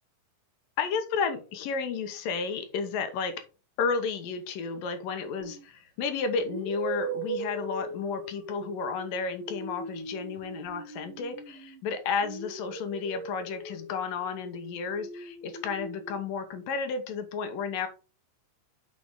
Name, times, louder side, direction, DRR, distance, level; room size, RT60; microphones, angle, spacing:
voice 1, 0.8-3.3 3.8-17.9, left 5 dB, 80° left, 2.8 m, -32 dB
sound 1, 5.4-5.7 6.5-11.8 12.2-16.2, right 3 dB, 80° right, 3.1 m, -39 dB
6.8 x 6.3 x 3.7 m
omnidirectional pair, 4.0 m